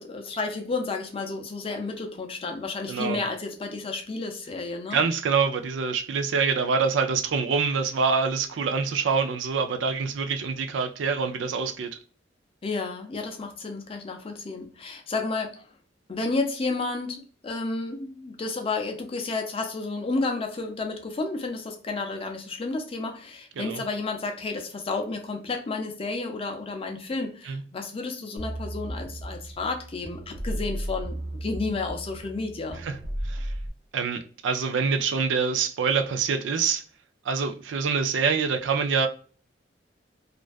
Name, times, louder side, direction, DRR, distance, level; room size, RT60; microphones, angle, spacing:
voice 1, 0.0-5.0 12.6-15.7 16.1-32.8, left 3 dB, 30° left, 0.5 m, -31 dB
voice 2, 2.9-3.2 4.9-11.9 23.6-23.8 27.5-27.6 32.8-33.0 33.3-33.5 33.9-36.8 37.3-39.1, right 5 dB, 85° right, 0.4 m, -25 dB
sound 1, 28.4-33.7, right 1 dB, 45° right, 0.7 m, -35 dB
2.4 x 2.2 x 2.3 m
head